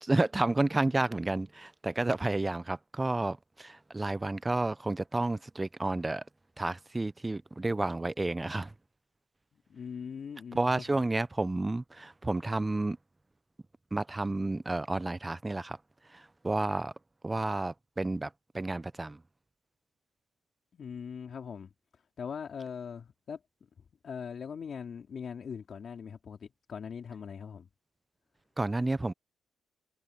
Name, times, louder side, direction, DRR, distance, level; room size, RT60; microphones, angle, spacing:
voice 1, 0.0-6.2 6.6-8.7 10.5-13.0 13.9-15.8 16.1-16.9 17.2-18.3 18.5-19.2 28.6-29.1, right 2 dB, 15° right, 0.6 m, -31 dB
voice 2, 9.7-11.0 20.7-21.7 22.2-23.4 24.0-27.7, left 6 dB, 50° left, 3.9 m, -41 dB
cardioid pair, 90°, 0 cm